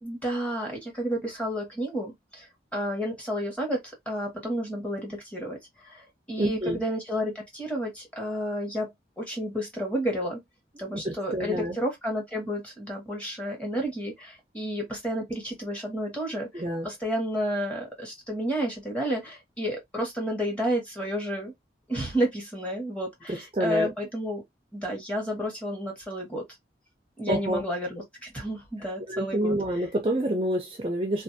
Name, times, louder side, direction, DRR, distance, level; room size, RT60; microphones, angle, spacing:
voice 1, 0.0-3.8 4.1-10.4 10.8-21.5 21.9-24.4 24.7-26.4 27.2-29.6, equal, 5° left, 1.1 m, -31 dB
voice 2, 6.4-6.8 10.9-11.8 16.5-16.9 23.3-23.9 27.3-27.6 29.1-31.2, right 1 dB, 30° right, 0.5 m, -28 dB
2.6 x 2.5 x 2.6 m
head